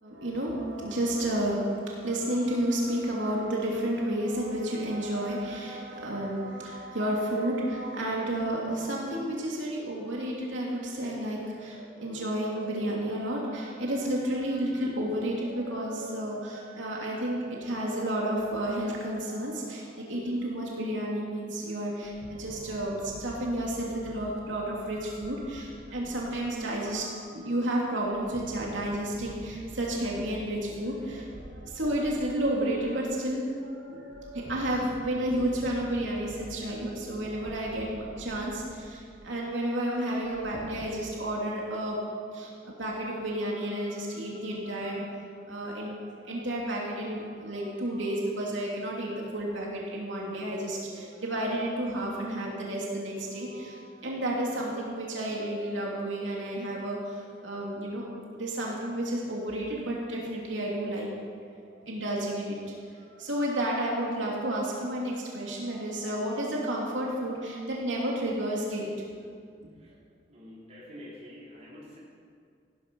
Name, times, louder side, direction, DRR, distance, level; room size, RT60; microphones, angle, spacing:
voice 1, 0.0-42.0 42.3-45.1 45.5-58.1 58.3-61.1 61.6-62.6 63.1-68.9, right 1 dB, 90° right, -3 dB, 2.9 m, -31 dB
sound 1, 22.0-27.3 28.0-33.4 34.1-39.5 40.2-40.9, equal, 60° right, 1.6 m, -48 dB
voice 2, 70.3-72.0, left 1 dB, 35° right, -6 dB, 4.2 m, -47 dB
16.5 x 13.0 x 5.5 m, 2.2 s
head